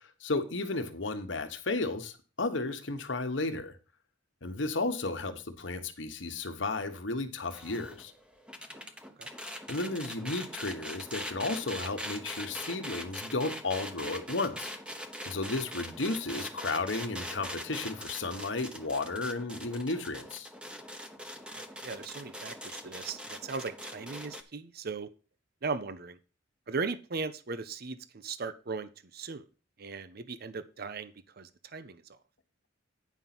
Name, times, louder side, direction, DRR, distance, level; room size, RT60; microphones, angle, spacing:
voice 1, 0.2-3.7 4.4-8.1 9.7-14.7 15.2-20.5, left 3 dB, 70° left, 7 dB, 1.3 m, -33 dB
sound 1, 7.5-24.4, equal, 5° right, 0.9 m, -42 dB
voice 2, 21.6-25.1 25.6-26.2 26.7-29.4 29.8-32.0, right 4 dB, 55° right, 13 dB, 0.7 m, -38 dB
9.4 x 5.4 x 6.0 m, 0.34 s
head